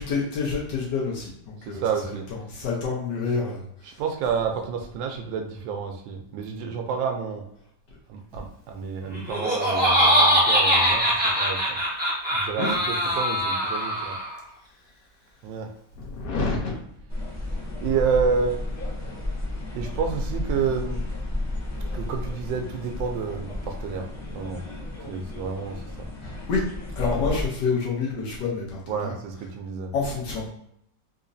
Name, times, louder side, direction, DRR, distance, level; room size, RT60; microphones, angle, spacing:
voice 1, 0.0-3.6 12.6-12.7 16.0-16.8 26.5-26.6 27.0-29.1 29.9-30.4, left 4 dB, 70° left, -3 dB, 1.4 m, -28 dB
voice 2, 1.7-2.3 3.8-7.4 8.1-11.8 12.3-14.2 15.4-15.7 17.8-18.6 19.7-21.0 21.9-24.6 25.1-26.1 27.1-27.3 28.9-29.9, right 6 dB, 80° right, 4 dB, 1.3 m, -29 dB
Laughter, 9.1-14.4, equal, 10° right, 0.7 m, -22 dB
sound 1, 17.1-27.5, left 1 dB, 25° left, 0.3 m, -32 dB
3.9 x 2.8 x 2.6 m, 0.73 s
omnidirectional pair, 2.0 m